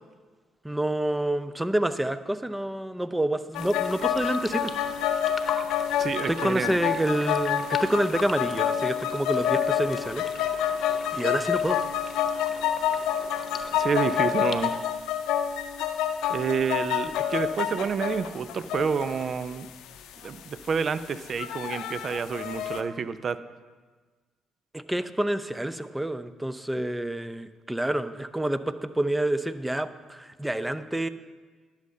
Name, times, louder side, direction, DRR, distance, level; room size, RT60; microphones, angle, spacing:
voice 1, 0.6-4.7 6.3-10.2 11.1-11.8 24.7-31.1, right 1 dB, 10° right, 12 dB, 0.6 m, -28 dB
sound 1, 3.5-22.8, left 9 dB, 75° left, 0.6 m, -28 dB
sound 2, 3.5-14.8, left 4 dB, 40° left, 0.9 m, -42 dB
voice 2, 6.0-6.8 13.7-14.7 16.3-19.7 20.2-23.4, right 6 dB, 50° right, 14 dB, 0.5 m, -29 dB
11.5 x 6.6 x 5.4 m, 1.4 s
hypercardioid pair, 50°, 0 cm